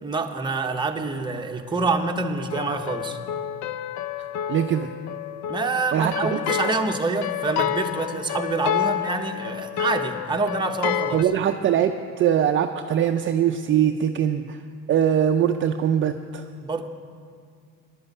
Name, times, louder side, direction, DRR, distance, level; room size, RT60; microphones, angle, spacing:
voice 1, 0.0-3.2 5.5-11.3 16.6-16.9, right 3 dB, 15° right, 3 dB, 0.8 m, -26 dB
sound 1, 2.5-11.2, left 10 dB, 60° left, 0.5 m, -29 dB
voice 2, 4.5-4.9 5.9-6.4 11.1-14.6 14.9-16.4, right 9 dB, 40° right, 5 dB, 0.4 m, -22 dB
11.0 x 7.8 x 9.4 m, 2.1 s
cardioid pair, 140°, 32 cm